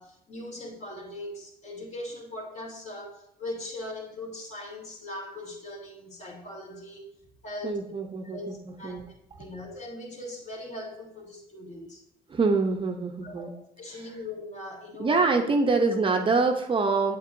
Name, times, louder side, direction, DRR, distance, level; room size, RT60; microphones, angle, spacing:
voice 1, 0.0-7.1 7.4-7.9 8.2-9.0 9.4-12.0 13.2-13.5 13.8-15.2, left 1 dB, 45° left, -1 dB, 2.6 m, -40 dB
voice 2, 7.6-9.0 12.3-13.5 15.0-17.2, right 4 dB, 30° right, 4 dB, 0.7 m, -25 dB
8.2 x 7.9 x 2.6 m, 0.84 s
cardioid pair, 110°, 17 cm